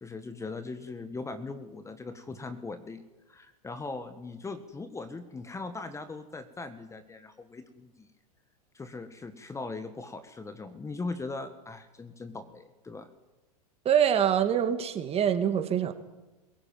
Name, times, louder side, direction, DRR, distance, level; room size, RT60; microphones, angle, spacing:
voice 1, 0.0-3.0 3.3-8.1 8.7-13.1, left 3 dB, 15° left, 10 dB, 1.6 m, -40 dB
voice 2, 13.8-15.9, right 9 dB, 30° right, 7 dB, 2.4 m, -25 dB
22.5 x 16.5 x 9.1 m, 1.1 s
hypercardioid pair, 100°, 20 cm